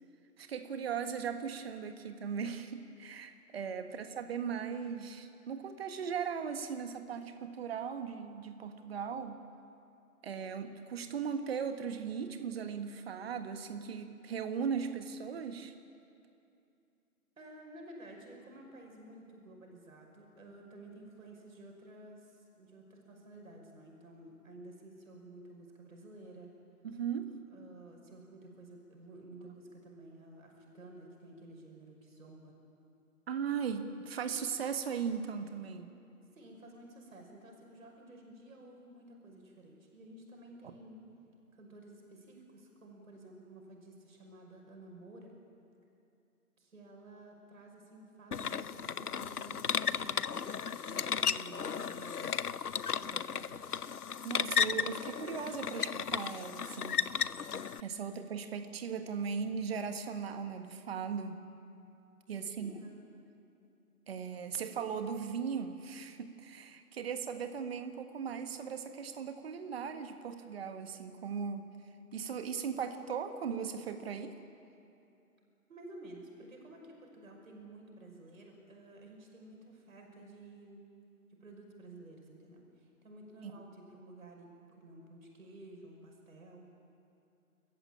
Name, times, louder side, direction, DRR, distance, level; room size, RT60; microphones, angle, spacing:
voice 1, 0.4-9.4 10.2-15.7 26.8-27.3 33.3-35.9 54.2-57.0 57.8-61.5 62.3-62.8 64.1-71.7 72.1-74.3 83.4-83.5, right 6 dB, 40° right, 7 dB, 1.7 m, -38 dB
voice 2, 17.4-26.5 27.5-32.5 36.3-41.0 41.5-45.3 46.6-52.4 53.0-53.8 62.4-62.9 75.7-80.8 81.4-86.7, right 2 dB, 65° right, 1 dB, 5.7 m, -52 dB
sound 1, 48.3-57.8, left 7 dB, 90° left, 0.7 m, -34 dB
28.0 x 14.5 x 8.9 m, 2.6 s
figure-of-eight pair, 140°, 45 cm